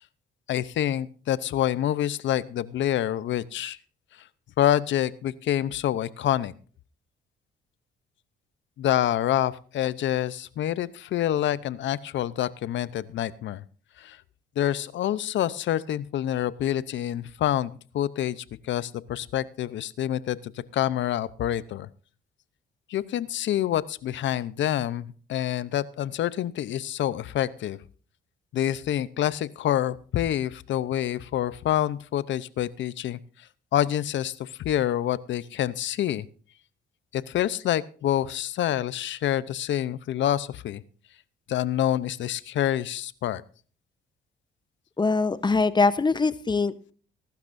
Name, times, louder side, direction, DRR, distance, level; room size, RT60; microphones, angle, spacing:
voice 1, 0.5-3.8 4.6-6.5 8.8-13.6 14.0-14.2 14.6-21.9 22.9-27.8 28.5-33.2 33.7-36.3 37.1-40.8 41.5-43.4, left 11 dB, 70° left, 18 dB, 0.7 m, -27 dB
voice 2, 45.0-46.9, left 4 dB, 20° left, 15 dB, 0.9 m, -23 dB
20.5 x 12.0 x 2.6 m, 0.40 s
cardioid pair, 90°, 20 cm